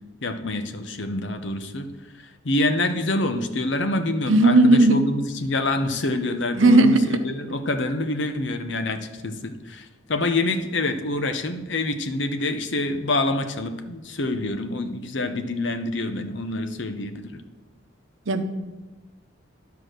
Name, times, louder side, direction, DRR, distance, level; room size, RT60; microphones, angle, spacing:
voice 1, 0.2-1.9 2.4-17.4, left 2 dB, 65° left, 8 dB, 0.8 m, -26 dB
voice 2, 4.3-5.0 6.6-7.2 18.3-18.4, right 2 dB, 80° right, 8 dB, 0.8 m, -16 dB
10.5 x 4.7 x 6.6 m, 1.2 s
head